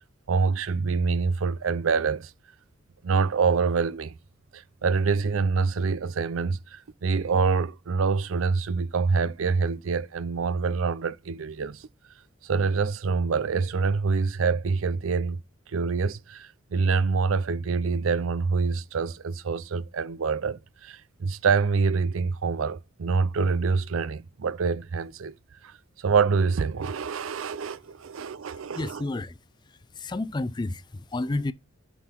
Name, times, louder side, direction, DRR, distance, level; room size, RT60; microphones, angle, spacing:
voice 1, 0.3-2.3 3.0-4.1 4.5-11.9 12.4-15.4 15.7-25.3 25.6-29.0, right 5 dB, 85° right, 0.5 m, -26 dB
voice 2, 28.7-29.4 29.7-31.5, left 2 dB, 20° left, 0.4 m, -31 dB
7.9 x 3.8 x 5.8 m
head